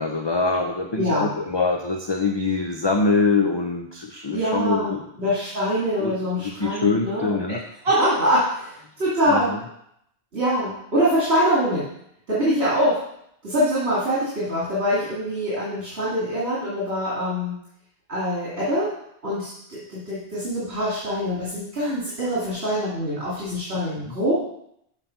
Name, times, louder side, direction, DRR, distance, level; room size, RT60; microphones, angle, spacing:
voice 1, 0.0-5.0 6.0-6.1 6.6-7.6 9.3-9.6 24.1-24.2, left 3 dB, 30° left, 3 dB, 0.5 m, -24 dB
voice 2, 1.0-1.4 4.3-7.4 7.8-9.5 10.3-11.8 12.3-13.0 13.4-17.5 18.1-18.9 19.2-24.3, equal, 80° right, -8 dB, 2.6 m, -24 dB
7.4 x 5.3 x 5.6 m, 0.75 s
omnidirectional pair, 1.1 m